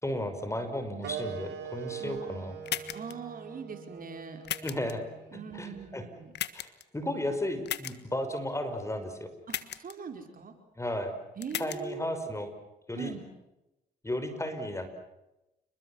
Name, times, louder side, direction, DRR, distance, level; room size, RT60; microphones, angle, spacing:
voice 1, 0.0-2.5 4.6-5.0 5.5-6.0 6.5-6.7 6.9-9.3 10.8-11.2 11.6-12.5 12.9-13.1 14.0-14.9, left 1 dB, 15° left, 8 dB, 5.7 m, -34 dB
voice 2, 0.9-1.4 2.0-2.5 2.9-4.4 5.3-6.3 9.5-10.5 11.4-12.1 12.9-13.2, right 6 dB, 50° right, 5 dB, 5.3 m, -42 dB
sound 1, 1.0-6.1, right 7 dB, 75° right, 6.0 m, -42 dB
sound 2, 2.7-3.1 4.4-4.9 6.3-6.8 7.7-7.9 9.5-9.9 11.4-11.8, left 11 dB, 70° left, 1.6 m, -35 dB
30.0 x 21.5 x 7.4 m, 0.93 s
supercardioid pair, 70°, 18 cm